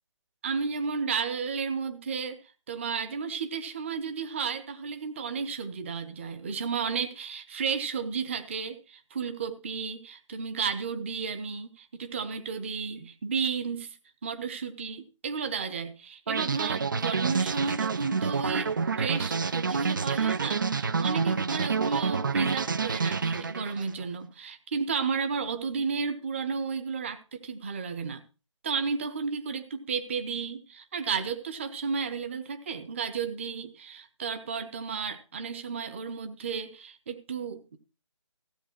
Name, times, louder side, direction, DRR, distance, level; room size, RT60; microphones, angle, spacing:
voice 1, 0.4-2.4 2.7-14.0 14.2-18.7 19.0-28.2 28.6-37.8, right 5 dB, 25° right, 9 dB, 1.0 m, -33 dB
sound 1, 16.3-23.9, right 5 dB, 40° right, 0.5 m, -28 dB
15.5 x 7.7 x 4.5 m, 0.34 s
figure-of-eight pair, 150°, 16 cm